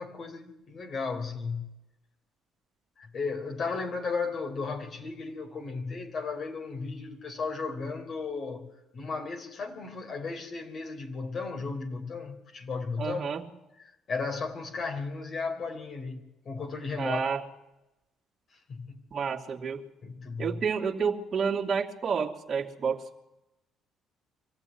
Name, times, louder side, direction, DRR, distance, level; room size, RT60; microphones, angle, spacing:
voice 1, 0.0-1.7 3.0-8.7 8.9-13.3 13.8-17.2 18.7-19.0 20.0-20.7, left 4 dB, 50° left, 3 dB, 4.0 m, -35 dB
voice 2, 13.0-13.4 17.0-17.4 19.1-19.8 20.4-23.2, right 6 dB, 45° right, 0 dB, 2.7 m, -30 dB
25.0 x 15.0 x 9.3 m, 0.96 s
supercardioid pair, 60°, 0 cm